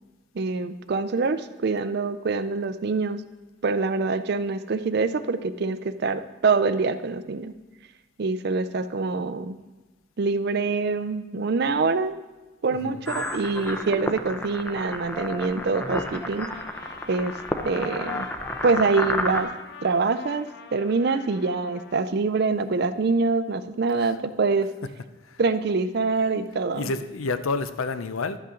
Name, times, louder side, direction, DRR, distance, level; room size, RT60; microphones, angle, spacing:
voice 1, 0.3-3.2 3.6-7.5 8.2-9.6 10.2-12.2 12.6-16.5 17.1-17.3 17.6-18.3 18.6-19.5 19.8-20.5 20.7-24.7 25.4-26.9, right 4 dB, 50° right, 13 dB, 0.4 m, -25 dB
voice 2, 12.7-13.0 24.0-24.1 24.8-24.9 25.2-25.4 26.7-28.4, left 3 dB, 85° left, 11 dB, 0.6 m, -29 dB
sound 1, 13.1-19.4, left 1 dB, 10° left, 0.5 m, -31 dB
Trumpet, 15.4-22.0, left 6 dB, 55° left, 0.7 m, -45 dB
11.5 x 8.5 x 3.8 m, 1.1 s
head